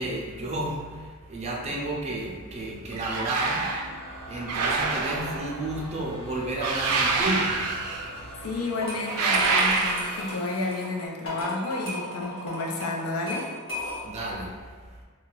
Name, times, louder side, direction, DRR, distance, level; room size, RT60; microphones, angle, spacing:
voice 1, 0.0-3.7 4.3-7.6 14.0-14.6, right 1 dB, 30° right, -2 dB, 0.4 m, -31 dB
sound 1, 2.9-3.9 4.5-5.5 6.6-8.2 9.1-10.3, right 4 dB, 90° right, 0.4 m, -26 dB
sound 2, 3.3-11.0, right 1 dB, 25° left, 0.6 m, -43 dB
voice 2, 8.4-13.5, left 2 dB, 85° left, 0 dB, 0.5 m, -31 dB
sound 3, 8.6-14.2, left 1 dB, 55° left, 1.1 m, -35 dB
2.3 x 2.2 x 3.9 m, 1.5 s
head